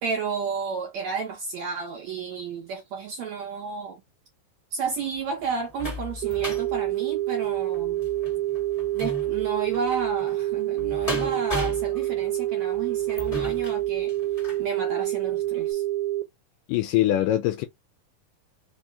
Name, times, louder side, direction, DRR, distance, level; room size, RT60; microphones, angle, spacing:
voice 1, 0.0-4.0 4.7-8.0 8.9-14.1 14.6-15.8, right 5 dB, 70° right, 1.8 m, -32 dB
sound 1, 4.8-14.7 15.2-15.3 15.7-15.8, left 2 dB, 15° left, 1.1 m, -37 dB
sound 2, 6.2-16.2, right 15 dB, 90° right, 2.4 m, -27 dB
voice 2, 16.7-17.7, left 13 dB, 80° left, 1.9 m, -23 dB
5.3 x 2.8 x 3.5 m
omnidirectional pair, 4.2 m